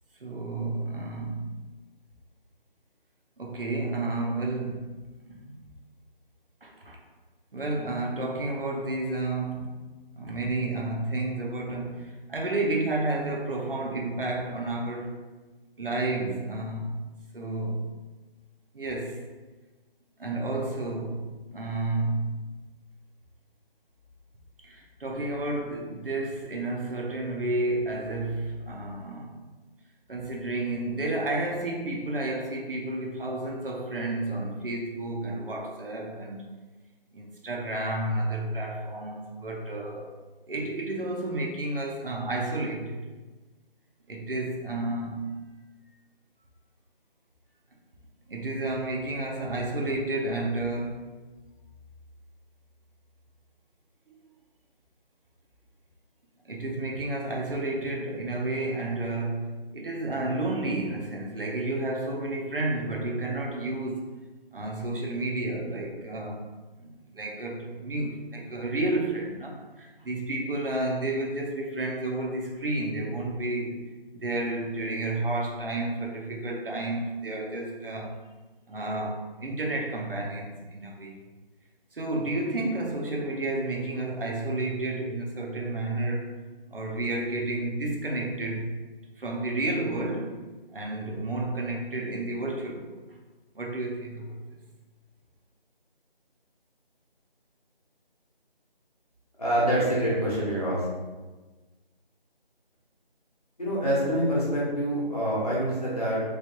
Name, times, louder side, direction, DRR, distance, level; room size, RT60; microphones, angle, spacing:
voice 1, 0.2-1.6 3.4-5.7 6.6-7.0 7.5-9.7 10.2-15.1 15.8-17.0 17.3-18.0 18.7-19.2 20.2-22.6 24.6-29.4 30.1-36.5 37.1-40.1 40.5-43.1 44.1-45.3 48.3-51.1 56.4-64.1 64.5-66.5 66.8-73.8 74.1-78.2 78.7-81.2 81.9-86.3 86.7-88.8 89.2-90.4 90.7-93.0 93.5-94.4, right 2 dB, 65° right, 0 dB, 0.7 m, -31 dB
voice 2, 99.4-100.9 103.6-106.2, equal, 40° left, -7 dB, 0.9 m, -26 dB
3.1 x 2.3 x 2.8 m, 1.2 s
figure-of-eight pair, 170°, 30 cm